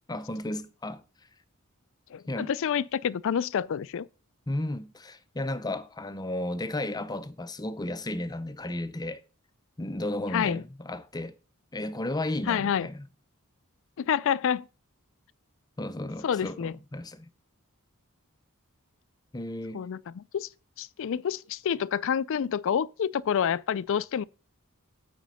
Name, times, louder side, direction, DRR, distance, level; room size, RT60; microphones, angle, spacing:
voice 1, 0.1-1.0 2.3-2.5 4.5-9.2 9.8-11.3 11.7-13.1 15.8-17.3 19.3-19.9, left 1 dB, 20° left, 0.6 m, -34 dB
voice 2, 2.1-4.1 10.3-10.6 12.5-12.9 14.0-14.6 16.2-16.7 19.7-20.5 20.8-24.2, left 8 dB, 65° left, 0.4 m, -28 dB
9.0 x 5.1 x 5.6 m
head